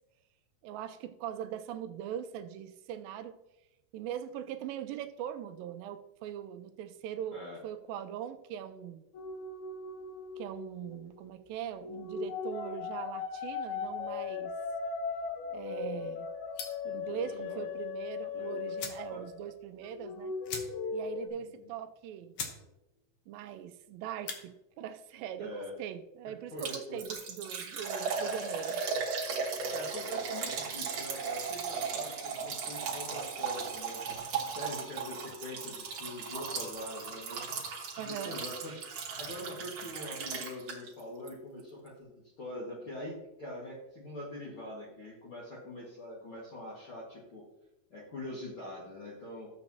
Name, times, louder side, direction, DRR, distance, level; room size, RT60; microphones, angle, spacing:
voice 1, 0.6-3.4 3.9-9.0 10.4-14.5 15.5-16.3 16.8-20.3 20.9-22.4 23.3-28.8 38.0-38.4, right 10 dB, 80° right, 8 dB, 2.2 m, -41 dB
sound 1, 9.1-11.2 11.8-19.5 19.8-21.3, left 5 dB, 85° left, 2.8 m, -38 dB
sound 2, 16.5-16.9 18.3-18.4 18.7-19.1 19.5-19.6 19.8-19.9 20.4-21.0 21.4-21.5 22.0-22.1 22.3-22.6 23.0-23.3 24.1-24.4, left 6 dB, 70° left, 1.6 m, -41 dB
voice 2, 17.0-17.7 18.3-18.5 19.1-19.2 21.4-21.7 25.4-25.7 26.5-27.0 29.7-37.4 38.0-38.8 39.2-42.1 42.4-47.4 47.9-49.5, left 1 dB, 45° left, -7 dB, 2.1 m, -43 dB
Liquid, 26.6-41.0 41.3-41.4 41.9-42.0, right 5 dB, 55° right, 2.1 m, -37 dB
13.5 x 7.8 x 2.8 m, 0.94 s
omnidirectional pair, 4.4 m